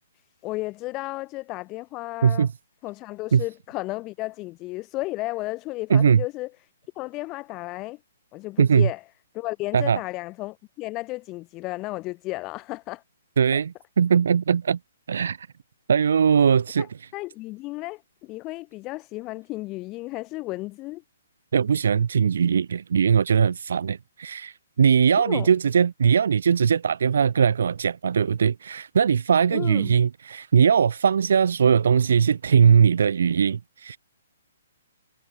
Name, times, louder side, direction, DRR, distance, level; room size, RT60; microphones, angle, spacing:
voice 1, 0.4-2.5 2.8-6.5 7.0-8.0 8.3-9.0 9.3-13.0 16.8-21.0 25.2-25.5 29.5-30.0, left 20 dB, 25° left, 0.5 m, -33 dB
voice 2, 5.9-6.2 8.6-8.9 9.7-10.0 13.4-14.8 15.1-15.5 15.9-16.9 21.5-34.0, right 7 dB, 70° right, 0.4 m, -20 dB
hypercardioid pair, 155°, 0 cm